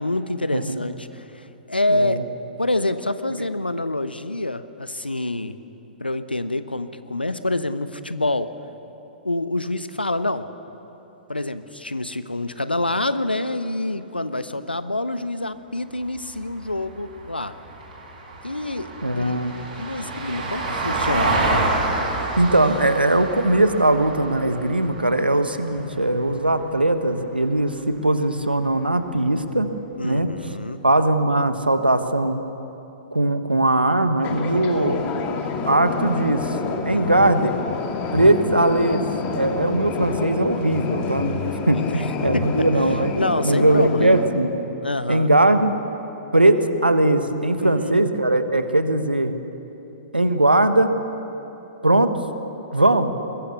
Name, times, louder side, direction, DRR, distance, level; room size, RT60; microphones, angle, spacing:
voice 1, 0.0-2.2 2.6-5.6 6.0-8.5 9.2-10.5 11.3-17.5 18.4-18.9 19.2-21.5 30.0-30.8 36.8-37.3 41.7-42.5 43.1-44.2 44.8-45.3 47.6-47.9, left 2 dB, 85° left, 12 dB, 1.0 m, -27 dB
voice 2, 1.9-2.2 19.0-19.5 22.4-29.7 30.0-30.3 30.8-32.5 33.1-35.3 35.7-36.6 36.8-37.5 38.1-39.0 39.3-43.2 43.4-44.5 45.1-45.8 46.3-49.3 50.1-50.9 51.8-52.1 52.7-53.1, right 1 dB, 85° right, 9 dB, 1.4 m, -20 dB
Vehicle, 15.9-26.4 28.7-28.8, right 2 dB, 55° right, 6.7 m, -28 dB
sound 1, 34.2-44.3, left 5 dB, 30° left, 2.2 m, -28 dB
22.0 x 20.5 x 7.0 m, 3.0 s
figure-of-eight pair, 110°, 5 cm